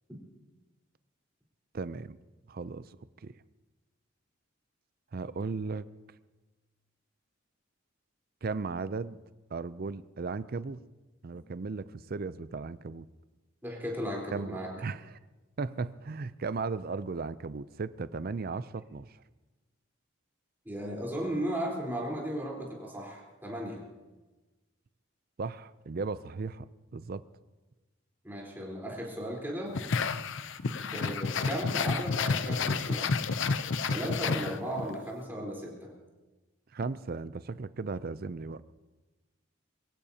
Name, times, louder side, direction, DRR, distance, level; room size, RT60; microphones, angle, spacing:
voice 1, 1.7-2.2 2.5-3.0 3.2-3.4 5.1-5.9 8.4-9.2 9.5-10.8 11.2-13.1 14.3-15.2 15.6-19.2 25.4-27.2 36.7-38.6, right 4 dB, 50° right, 15 dB, 0.5 m, -36 dB
voice 2, 13.6-14.7 20.7-23.8 28.2-29.8 30.9-33.2 33.9-35.9, equal, 10° right, -3 dB, 3.9 m, -36 dB
sound 1, 29.7-35.0, left 4 dB, 65° left, 0.6 m, -30 dB
23.0 x 15.5 x 2.9 m, 1.2 s
head